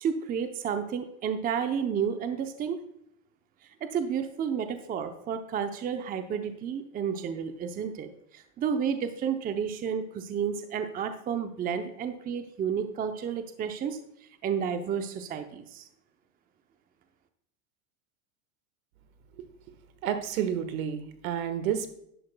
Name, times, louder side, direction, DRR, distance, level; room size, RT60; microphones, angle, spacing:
voice 1, 0.0-2.8 3.8-8.1 8.3-14.0 14.4-15.9, right 7 dB, 20° right, 8 dB, 0.6 m, -31 dB
voice 2, 20.0-21.9, right 9 dB, 70° right, 9 dB, 1.5 m, -30 dB
11.0 x 10.5 x 2.2 m, 0.72 s
supercardioid pair, 120°, 43 cm